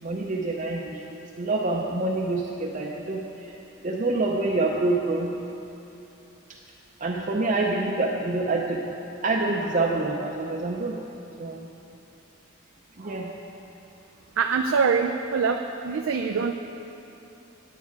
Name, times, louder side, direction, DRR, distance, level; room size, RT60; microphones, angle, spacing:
voice 1, 0.0-3.5 3.8-5.3 7.0-8.9 9.2-11.0 11.4-11.7 13.0-13.3, right 2 dB, 40° right, -2 dB, 0.6 m, -27 dB
voice 2, 14.4-16.5, right 5 dB, 90° right, 5 dB, 0.4 m, -24 dB
9.5 x 9.1 x 4.7 m, 2.9 s
head